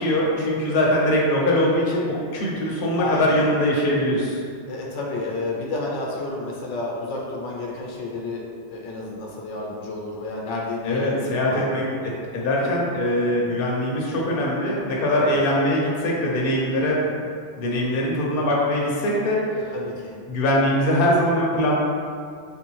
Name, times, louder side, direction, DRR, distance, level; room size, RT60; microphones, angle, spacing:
voice 1, 0.0-4.4 10.8-17.1 17.6-19.6 20.3-21.8, left 1 dB, 55° left, -4 dB, 0.8 m, -22 dB
voice 2, 3.0-3.4 4.7-8.4 8.7-11.7 15.1-15.4 19.7-20.2, left 2 dB, 85° left, -2 dB, 0.9 m, -30 dB
3.5 x 2.6 x 3.0 m, 2.2 s
omnidirectional pair, 1.2 m